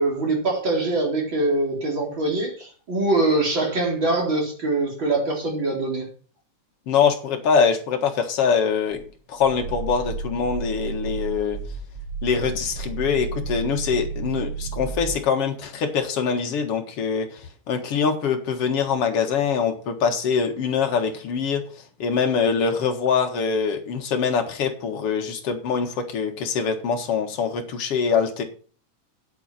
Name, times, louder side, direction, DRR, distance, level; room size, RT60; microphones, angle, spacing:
voice 1, 0.0-6.1, right 2 dB, 35° right, -1 dB, 4.6 m, -23 dB
voice 2, 6.9-9.0 9.3-11.6 12.2-17.4 17.7-21.6 22.0-28.4, left 6 dB, 55° left, 4 dB, 2.4 m, -23 dB
Growling, 8.9-15.3, right 4 dB, 50° right, 1.3 m, -32 dB
9.5 x 8.2 x 5.7 m, 0.39 s
omnidirectional pair, 3.6 m